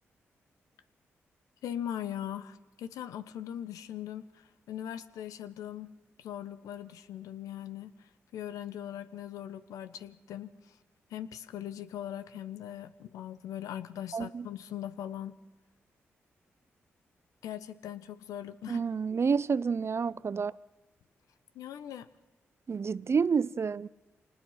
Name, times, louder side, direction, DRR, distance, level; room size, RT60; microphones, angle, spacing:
voice 1, 1.6-5.9 6.2-10.8 11.1-15.4 17.4-18.8 21.5-22.1, left 10 dB, 80° left, 1.0 m, -40 dB
voice 2, 14.1-14.5 18.7-20.5 22.7-23.9, right 5 dB, 50° right, 0.6 m, -29 dB
26.0 x 19.5 x 5.8 m
hypercardioid pair, 40°, 6 cm